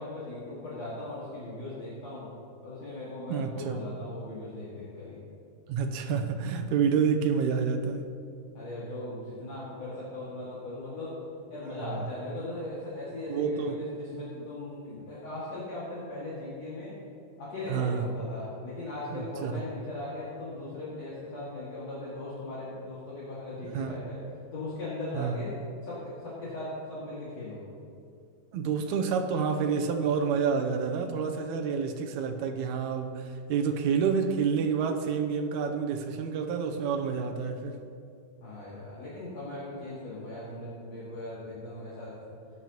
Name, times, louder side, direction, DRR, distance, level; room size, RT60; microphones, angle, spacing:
voice 1, 0.0-2.3 2.6-5.2 8.5-11.2 11.5-16.9 17.4-24.2 24.5-27.6 38.4-42.2, left 2 dB, 50° left, -9 dB, 3.2 m, -38 dB
voice 2, 3.3-3.8 5.7-8.1 11.6-12.0 13.3-13.8 17.7-18.0 19.1-19.6 23.7-24.0 25.1-25.4 28.5-37.8, right 6 dB, 75° right, 5 dB, 1.9 m, -29 dB
18.0 x 9.6 x 3.0 m, 2.5 s
omnidirectional pair, 3.9 m